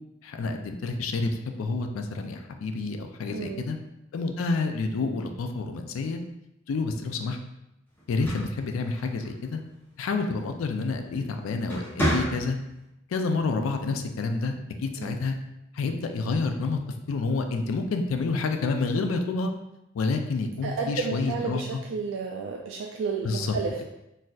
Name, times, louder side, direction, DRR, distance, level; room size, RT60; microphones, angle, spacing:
voice 1, 0.2-3.8 4.1-6.2 6.7-7.4 8.1-9.6 10.0-12.6 13.1-15.4 15.7-16.8 17.1-19.5 19.9-21.6 23.2-23.6, left 3 dB, 90° left, 5 dB, 0.4 m, -29 dB
voice 2, 3.3-3.6 15.0-15.2 20.6-23.9, right 5 dB, 70° right, 0 dB, 0.3 m, -32 dB
sound 1, 8.0-9.5 11.0-11.2 11.6-12.8, equal, 10° left, 0.8 m, -30 dB
4.0 x 2.6 x 2.3 m, 0.88 s
head